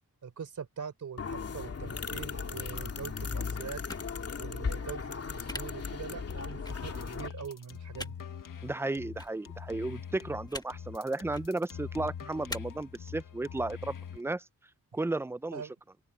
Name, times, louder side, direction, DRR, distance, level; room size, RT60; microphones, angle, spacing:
voice 1, 0.2-3.8 4.4-8.2 15.5-15.7, right 6 dB, 60° right, 3.7 m, -43 dB
sound 1, 1.2-7.3, left 5 dB, 45° left, 2.6 m, -37 dB
sound 2, 3.9-4.0 5.5-5.6 6.6-6.7 7.9-8.1 9.2-9.3 10.5-10.7 11.2-11.4 12.5-12.6, left 1 dB, 10° left, 1.6 m, -39 dB
sound 3, 6.2-14.2, left 8 dB, 70° left, 1.5 m, -44 dB
voice 2, 8.6-14.4 14.9-15.6, right 2 dB, 10° right, 0.4 m, -34 dB
open air
wide cardioid pair, 125°, 33 cm